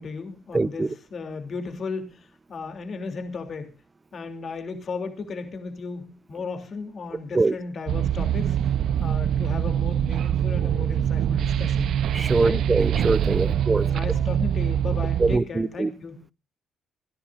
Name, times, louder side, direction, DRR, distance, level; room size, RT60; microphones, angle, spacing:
voice 1, 0.0-3.7 4.1-8.6 9.0-11.9 12.4-12.6 13.4-16.2, left 4 dB, 50° left, 3.0 m, -35 dB
voice 2, 0.5-0.9 7.3-7.5 12.1-13.9 15.2-15.9, right 3 dB, 25° right, 0.6 m, -23 dB
sound 1, 7.9-15.4, right 10 dB, 75° right, 0.7 m, -24 dB
27.0 x 11.0 x 2.6 m
cardioid pair, 90°, 0 cm